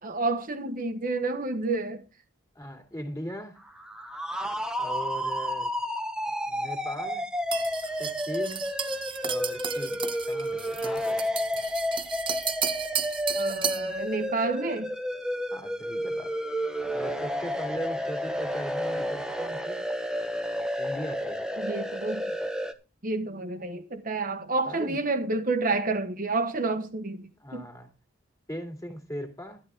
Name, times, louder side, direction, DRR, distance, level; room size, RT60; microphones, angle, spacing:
voice 1, 0.0-2.0 13.3-14.9 21.6-22.2 23.0-27.6, right 3 dB, 40° right, 1.2 m, -29 dB
voice 2, 2.5-3.6 4.7-5.7 6.5-7.3 8.0-8.7 9.2-11.3 15.5-16.3 16.9-19.8 20.8-21.4 24.7-25.0 27.4-27.9 28.5-29.6, equal, 15° left, 2.5 m, -38 dB
sound 1, 3.7-22.7, equal, 5° right, 0.9 m, -31 dB
sound 2, 7.5-13.9, right 8 dB, 25° right, 0.5 m, -33 dB
12.5 x 10.5 x 3.6 m
head